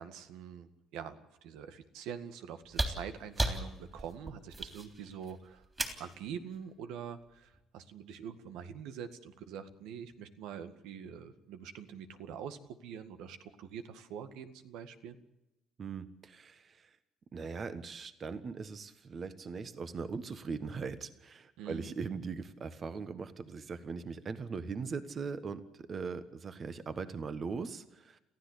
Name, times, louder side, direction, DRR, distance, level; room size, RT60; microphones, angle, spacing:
voice 1, 0.0-5.7 6.0-15.2 21.6-21.9, right 8 dB, 85° right, 10 dB, 1.9 m, -45 dB
sound 1, 2.6-6.2 7.5-7.6, right 2 dB, 15° right, 3.4 m, -35 dB
voice 2, 15.8-16.9 17.3-28.2, right 5 dB, 35° right, 11 dB, 1.4 m, -40 dB
29.0 x 15.0 x 8.3 m, 0.92 s
cardioid pair, 150°, 0 cm